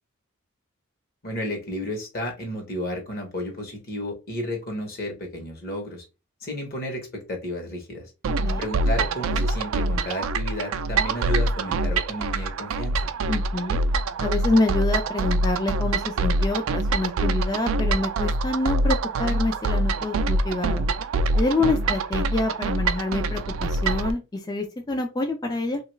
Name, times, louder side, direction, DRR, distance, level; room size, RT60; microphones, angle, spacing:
voice 1, 1.2-6.0 6.4-8.1 8.6-13.0 21.6-22.0, left 1 dB, 45° left, 0.9 m, -32 dB
sound 1, 8.2-24.1, right 2 dB, 65° right, 0.3 m, -25 dB
voice 2, 13.3-13.8 14.2-20.9 21.3-25.8, left 2 dB, 20° left, 0.3 m, -26 dB
2.9 x 2.3 x 3.0 m
head